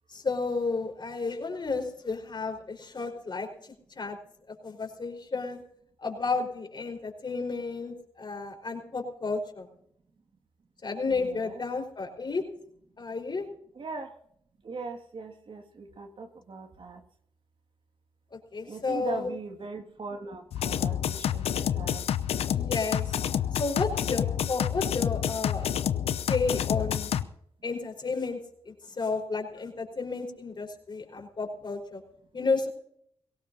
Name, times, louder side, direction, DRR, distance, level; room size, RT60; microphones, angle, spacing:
voice 1, 0.1-3.5 3.9-4.2 4.6-5.6 6.0-9.7 10.8-12.4 13.0-13.5 18.3-19.3 22.5-23.1 23.5-25.7 26.3-27.1 27.6-28.4 28.6-32.0 32.3-32.7, left 4 dB, 50° left, 3 dB, 4.8 m, -32 dB
voice 2, 11.1-11.6 13.8-14.1 14.6-17.0 18.7-22.1, right 3 dB, 55° right, 5 dB, 2.2 m, -40 dB
sound 1, 20.5-27.2, left 9 dB, 75° left, 0.7 m, -28 dB
22.5 x 17.5 x 2.8 m, 0.67 s
supercardioid pair, 45°, 10 cm